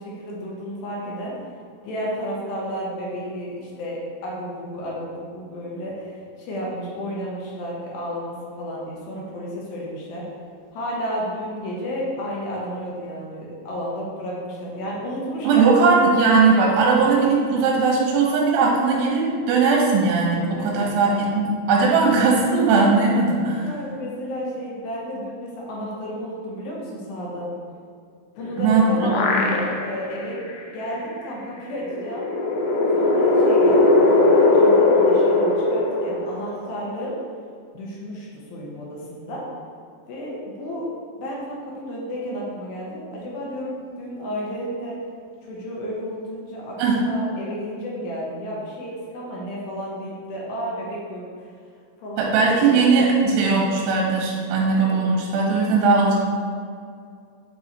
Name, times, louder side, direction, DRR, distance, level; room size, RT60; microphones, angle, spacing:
voice 1, 0.0-1.3 1.8-10.2 10.7-15.6 20.6-21.1 23.5-27.5 28.4-30.4 30.7-32.3 32.9-37.2 37.7-39.4 40.1-40.9 41.2-45.0 45.4-51.5 52.0-53.1, equal, 70° left, -4 dB, 2.4 m, -32 dB
voice 2, 15.4-23.7 28.6-29.4 46.8-47.0 52.2-56.1, right 4 dB, 75° right, -3 dB, 2.9 m, -19 dB
sound 1, 28.4-30.1 30.5-30.6 31.9-36.7, left 2 dB, 90° left, 2.1 m, -19 dB
8.2 x 3.1 x 4.2 m, 2.3 s
omnidirectional pair, 5.2 m